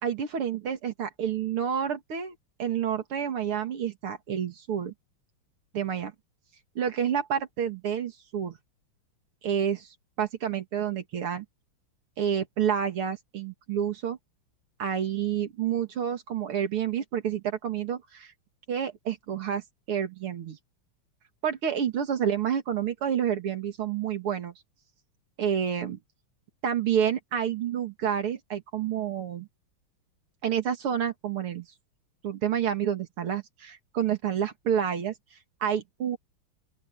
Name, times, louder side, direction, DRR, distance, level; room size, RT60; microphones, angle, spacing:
voice 1, 0.0-4.9 5.7-6.1 6.8-8.6 9.4-9.9 10.2-11.4 12.2-14.2 14.8-18.3 18.7-19.6 19.9-20.6 21.4-24.5 25.4-26.0 26.6-29.5 30.4-31.7 32.2-35.1 35.6-36.2, right 8 dB, 85° right, 2.9 m, -29 dB
open air
omnidirectional pair, 2.3 m